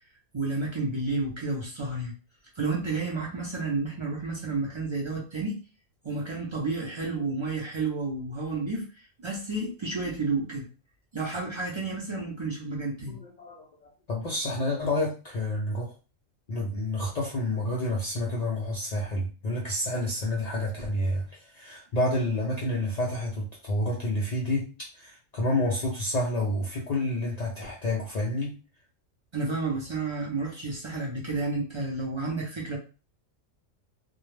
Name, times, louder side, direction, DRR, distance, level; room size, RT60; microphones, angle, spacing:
voice 1, 0.3-2.1 2.6-5.6 6.0-8.9 9.2-10.7 11.1-13.2 29.3-32.8, right 3 dB, 50° right, -3 dB, 0.3 m, -31 dB
voice 2, 13.1-15.9 16.5-24.7 24.9-28.5, left 1 dB, 80° left, -3 dB, 0.3 m, -29 dB
2.2 x 2.1 x 3.1 m, 0.34 s
omnidirectional pair, 1.3 m